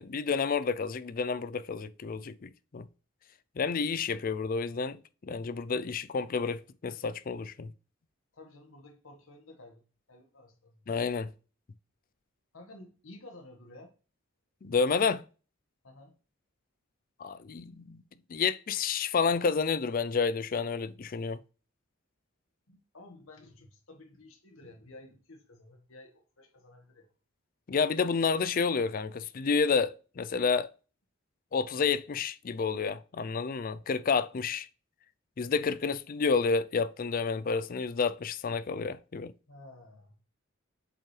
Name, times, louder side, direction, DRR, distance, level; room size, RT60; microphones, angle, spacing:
voice 1, 0.0-2.9 3.6-7.7 10.9-11.3 14.6-15.2 17.2-18.0 18.3-21.4 27.7-30.7 31.5-34.7 35.4-39.3, left 5 dB, 45° left, 0.4 m, -30 dB
voice 2, 8.3-10.9 12.5-13.9 15.8-16.2 22.7-27.1 39.5-40.2, left 2 dB, 85° left, 1.5 m, -52 dB
7.1 x 5.4 x 3.3 m
head